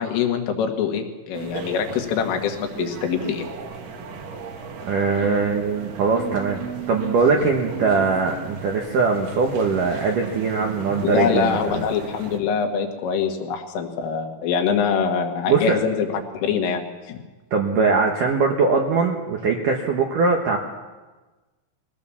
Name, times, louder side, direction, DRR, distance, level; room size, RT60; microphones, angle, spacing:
voice 1, 0.0-3.5 11.0-17.2, left 6 dB, 75° left, 4 dB, 4.3 m, -24 dB
sound 1, 1.3-12.4, right 5 dB, 60° right, 2.4 m, -36 dB
voice 2, 4.9-6.6 6.9-11.8 15.5-15.8 17.5-20.6, right 4 dB, 80° right, 2 dB, 1.9 m, -21 dB
22.5 x 17.0 x 7.2 m, 1.2 s
omnidirectional pair, 5.9 m